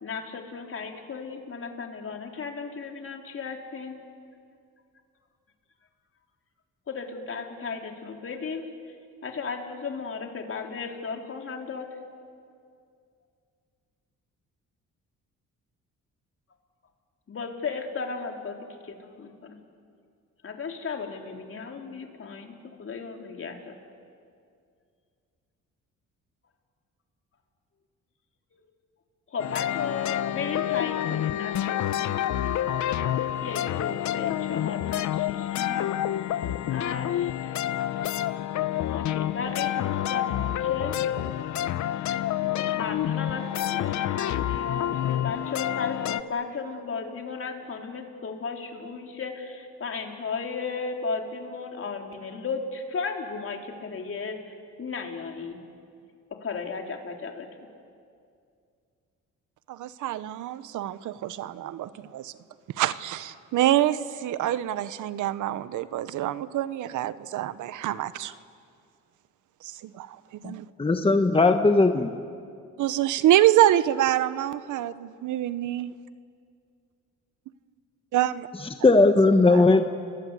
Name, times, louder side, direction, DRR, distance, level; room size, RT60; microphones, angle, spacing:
voice 1, 0.0-4.0 6.9-8.9 9.2-11.9 17.3-19.6 20.4-23.8 28.5-28.6 29.3-32.1 33.4-36.2 36.7-37.5 38.9-41.0 42.1-42.3 42.6-55.6 56.4-57.5, left 5 dB, 45° left, 3 dB, 3.7 m, -35 dB
sound 1, 29.4-46.2, left 12 dB, 70° left, 0.8 m, -28 dB
voice 2, 59.7-62.3 62.8-68.3 69.6-70.2 70.4-70.7 72.8-75.9 78.1-78.5 79.5-79.6, right 13 dB, 80° right, 15 dB, 1.0 m, -26 dB
voice 3, 70.8-72.1 78.8-79.8, left 3 dB, 20° left, 6 dB, 1.3 m, -18 dB
30.0 x 21.0 x 8.3 m, 2.3 s
cardioid pair, 90°, 30 cm